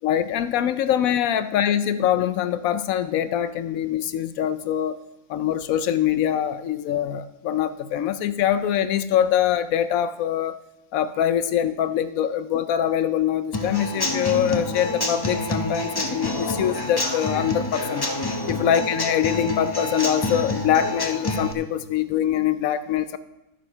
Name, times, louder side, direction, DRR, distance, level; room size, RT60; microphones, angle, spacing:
voice 1, 0.0-5.0 5.3-10.6 10.9-18.1 18.5-23.2, left 10 dB, 85° left, 13 dB, 1.0 m, -23 dB
Human voice / Acoustic guitar / Drum, 13.5-21.5, left 2 dB, 20° left, 0.7 m, -27 dB
10.5 x 8.8 x 5.5 m, 0.98 s
omnidirectional pair, 1.4 m